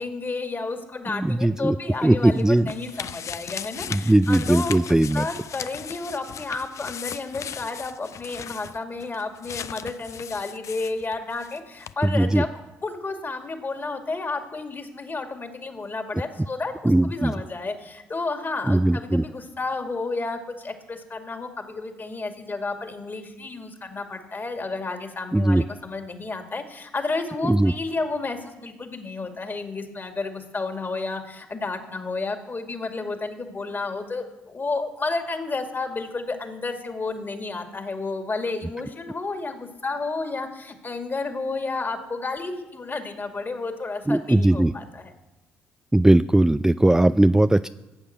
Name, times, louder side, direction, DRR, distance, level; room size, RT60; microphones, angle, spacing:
voice 1, 0.0-12.5 12.8-45.1, left 3 dB, 30° left, 5 dB, 2.3 m, -31 dB
voice 2, 1.1-1.8 2.0-2.7 3.9-5.3 12.0-12.4 16.8-17.3 18.7-19.2 25.3-25.6 27.4-27.7 44.1-44.7 45.9-47.7, right 1 dB, 10° right, 12 dB, 0.4 m, -19 dB
sound 1, 1.9-11.6 11.8-11.9, left 8 dB, 50° left, 0.5 m, -37 dB
14.5 x 8.3 x 7.0 m, 1.0 s
hypercardioid pair, 50°, 6 cm